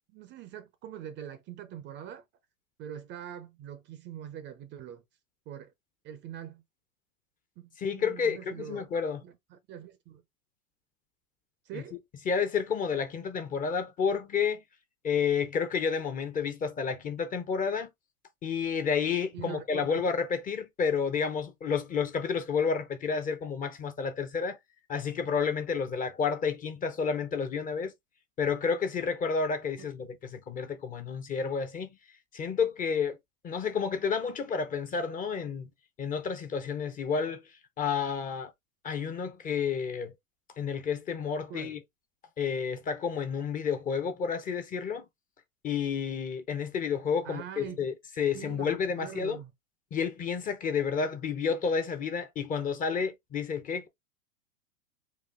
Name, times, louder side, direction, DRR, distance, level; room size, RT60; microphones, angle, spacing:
voice 1, 0.1-2.2 2.8-5.0 5.5-5.7 6.0-6.6 7.6-8.9 9.2-10.2 11.6-12.0 19.3-20.0 29.8-29.9 41.5-41.8 47.2-47.8 48.3-49.5, right 9 dB, 25° right, 0.6 m, -43 dB
voice 2, 7.8-9.2 11.7-11.8 12.3-14.6 15.0-17.9 18.4-24.6 24.9-27.9 28.4-32.0 32.3-33.2 33.4-35.7 36.0-37.4 37.8-38.5 38.8-40.1 40.6-41.8 42.4-45.0 45.6-49.4 49.9-53.9, left 6 dB, 20° left, 0.6 m, -30 dB
4.2 x 2.4 x 3.5 m
hypercardioid pair, 105°, 43 cm